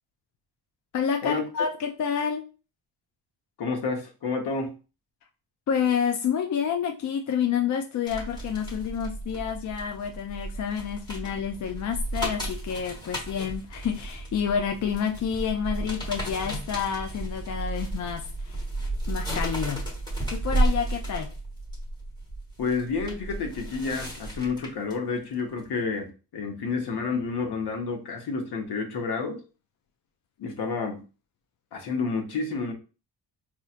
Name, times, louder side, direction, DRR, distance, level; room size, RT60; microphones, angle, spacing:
voice 1, 0.9-2.4 5.7-18.6 19.1-19.8 20.3-21.3, left 7 dB, 45° left, 4 dB, 0.4 m, -29 dB
voice 2, 3.6-4.7 22.6-29.4 30.4-31.0 31.7-32.7, left 4 dB, 65° left, 3 dB, 1.0 m, -30 dB
sound 1, 8.1-24.9 25.4-25.6, right 1 dB, 10° left, 1.2 m, -33 dB
4.3 x 2.4 x 2.4 m, 0.33 s
cardioid pair, 95°, 43 cm